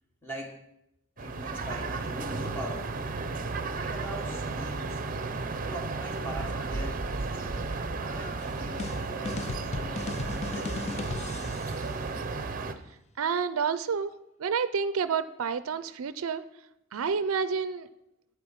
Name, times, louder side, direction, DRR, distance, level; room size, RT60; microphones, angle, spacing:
voice 1, 0.2-0.6 1.2-3.0 3.8-5.0 5.7-7.7 8.1-10.0 10.3-11.1, equal, 10° left, 0 dB, 1.3 m, -42 dB
sound 1, 1.2-12.7, right 3 dB, 40° right, 0.7 m, -33 dB
sound 2, 8.4-11.9, left 4 dB, 30° left, 0.5 m, -37 dB
voice 2, 13.2-16.4 16.9-17.9, right 6 dB, 80° right, 13 dB, 0.5 m, -29 dB
8.6 x 7.8 x 5.8 m, 0.81 s
head